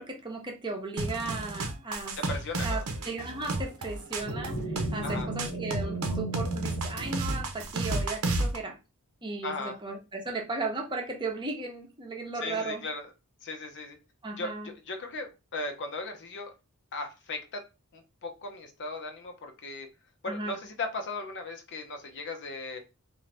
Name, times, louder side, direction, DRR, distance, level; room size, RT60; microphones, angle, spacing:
voice 1, 0.0-2.1 2.6-8.8 9.2-12.9 14.2-14.7 20.2-20.6, right 3 dB, 20° right, 2 dB, 0.8 m, -36 dB
sound 1, 1.0-8.6, right 2 dB, 70° right, 0.8 m, -32 dB
voice 2, 2.2-2.9 5.0-5.3 9.4-9.8 12.4-13.1 13.4-14.0 14.4-16.5 16.9-17.6 17.9-19.9 20.2-22.8, left 3 dB, 55° left, 5 dB, 0.7 m, -37 dB
sound 2, 4.2-7.9, right 2 dB, 85° left, 1.4 m, -35 dB
3.8 x 2.7 x 3.3 m, 0.28 s
head